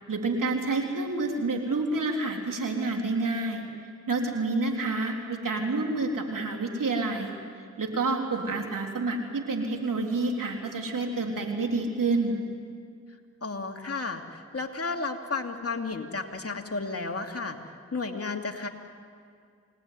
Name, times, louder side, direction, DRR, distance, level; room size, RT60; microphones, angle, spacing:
voice 1, 0.1-3.6 4.1-7.4 7.8-12.4, right 3 dB, 80° right, 2 dB, 3.6 m, -28 dB
voice 2, 13.4-17.6 17.9-18.7, left 4 dB, 45° left, 3 dB, 2.7 m, -33 dB
28.5 x 19.0 x 9.6 m, 2.2 s
cardioid pair, 40°, 32 cm